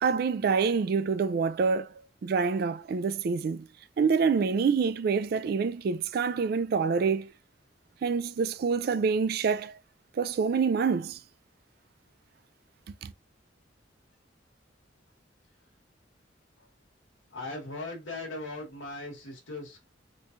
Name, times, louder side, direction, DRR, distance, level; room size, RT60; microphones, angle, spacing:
voice 1, 0.0-1.9 2.2-3.6 4.0-7.3 8.0-9.8 10.1-11.2 13.0-13.1, right 5 dB, 55° right, 0.3 m, -26 dB
voice 2, 17.3-19.8, left 2 dB, 85° left, 1.3 m, -39 dB
3.3 x 3.1 x 2.5 m
head